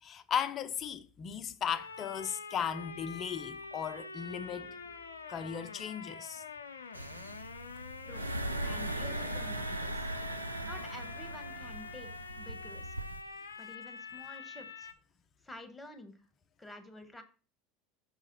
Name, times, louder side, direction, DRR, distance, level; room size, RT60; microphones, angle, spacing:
voice 1, 0.0-4.7 5.3-6.4, left 8 dB, 35° left, 0.6 m, -36 dB
sound 1, 1.7-14.9, left 5 dB, 80° left, 0.5 m, -46 dB
sound 2, 4.1-5.7, right 1 dB, 70° right, 2.3 m, -62 dB
sound 3, 6.9-13.2, right 1 dB, 90° right, 0.5 m, -39 dB
voice 2, 8.6-10.1 10.6-12.9 13.6-14.9 15.4-16.2 16.6-17.2, left 1 dB, 10° left, 1.3 m, -49 dB
6.2 x 4.8 x 4.1 m
figure-of-eight pair, 75°, 0 cm